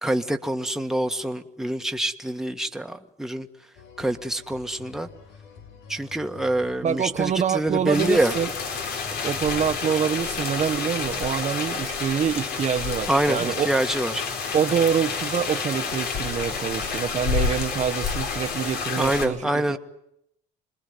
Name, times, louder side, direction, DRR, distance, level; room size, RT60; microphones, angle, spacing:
voice 1, 0.0-3.5 4.0-5.1 5.9-8.3 13.1-14.2 19.0-19.8, right 1 dB, 5° right, 5 dB, 1.6 m, -25 dB
sound 1, 3.7-10.3 11.1-12.4 12.7-12.8, left 6 dB, 90° left, 3.9 m, -48 dB
voice 2, 6.8-8.5 9.2-13.7 14.5-19.8, right 8 dB, 45° right, 6 dB, 1.0 m, -26 dB
sound 2, 7.9-19.3, left 5 dB, 70° left, 4.2 m, -29 dB
26.5 x 21.0 x 9.6 m, 0.76 s
cardioid pair, 110°, 17 cm